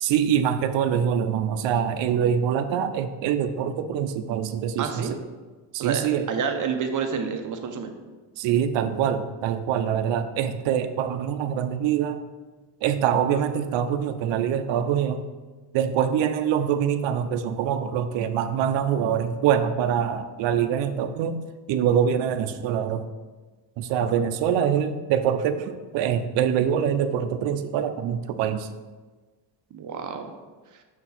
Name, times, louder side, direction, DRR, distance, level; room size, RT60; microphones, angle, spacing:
voice 1, 0.0-5.1 5.7-6.2 8.4-12.2 12.8-15.3 15.7-21.4 21.7-23.1 23.8-28.7, right 8 dB, 75° right, 9 dB, 0.6 m, -24 dB
voice 2, 4.8-5.2 5.8-6.0 6.3-7.9 29.7-30.3, right 6 dB, 45° right, 5 dB, 0.8 m, -28 dB
6.7 x 4.5 x 4.1 m, 1.3 s
cardioid pair, 145°, 45 cm